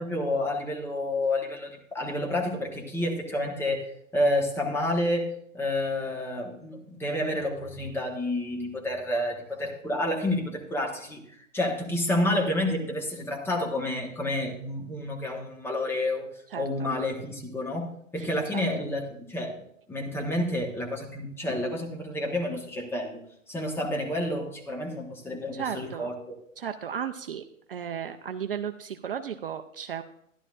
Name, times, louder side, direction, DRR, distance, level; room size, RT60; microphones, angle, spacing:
voice 1, 0.0-5.3 5.5-16.3 16.6-23.2 23.5-26.3, left 1 dB, 5° left, 0 dB, 1.1 m, -29 dB
voice 2, 16.5-16.9 18.2-18.6 25.5-26.1 26.6-30.0, right 8 dB, 45° right, 8 dB, 0.5 m, -35 dB
13.0 x 11.0 x 2.5 m, 0.70 s
figure-of-eight pair, 115°, 40 cm